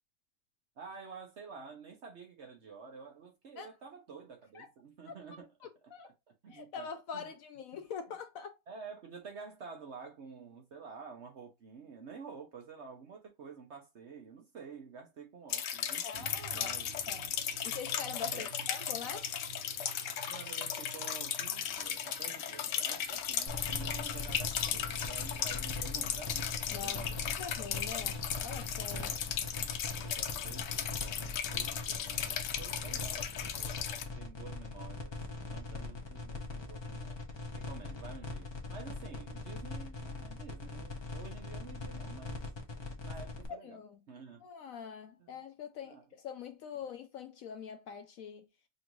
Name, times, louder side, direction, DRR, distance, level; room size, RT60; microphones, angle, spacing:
voice 1, 0.8-5.5 5.8-7.3 7.7-7.8 8.7-17.1 18.3-18.5 19.0-19.1 20.3-27.4 27.9-28.1 28.9-29.3 29.6-35.2 35.4-37.2 37.6-42.4 42.7-43.8 44.1-44.5 45.2-45.4 45.8-46.0, right 5 dB, 55° right, 0.9 m, -50 dB
voice 2, 5.6-6.1 6.5-8.6 16.0-16.7 17.1-17.3 17.6-19.3 26.7-27.1 27.4-29.1 43.5-44.0 44.4-48.5, left 7 dB, 70° left, 0.8 m, -44 dB
sound 1, 15.5-34.0, left 9 dB, 90° left, 1.2 m, -36 dB
sound 2, 16.1-23.7, right 9 dB, 80° right, 1.1 m, -52 dB
sound 3, 23.5-43.5, left 3 dB, 35° left, 0.4 m, -41 dB
5.2 x 2.5 x 3.0 m
omnidirectional pair, 1.8 m